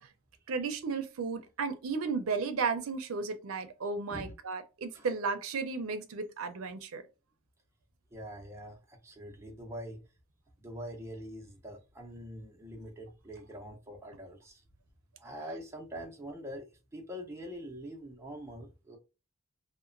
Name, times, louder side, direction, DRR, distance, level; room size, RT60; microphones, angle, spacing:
voice 1, 0.5-7.0, right 4 dB, 80° right, 0.5 m, -34 dB
voice 2, 8.1-10.0 10.6-14.6 15.2-19.0, equal, 15° right, 0.6 m, -44 dB
2.9 x 2.1 x 2.4 m
head